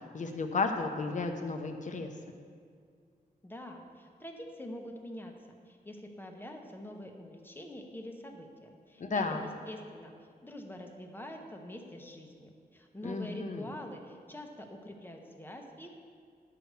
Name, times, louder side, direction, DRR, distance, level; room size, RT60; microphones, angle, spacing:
voice 1, 0.1-2.1 9.0-9.4 13.0-13.7, left 4 dB, 50° left, 5 dB, 0.8 m, -33 dB
voice 2, 3.4-5.3 5.7-10.1 10.4-15.9, left 1 dB, 15° left, 3 dB, 0.9 m, -45 dB
11.0 x 4.8 x 6.7 m, 2.1 s
wide cardioid pair, 130°, 17 cm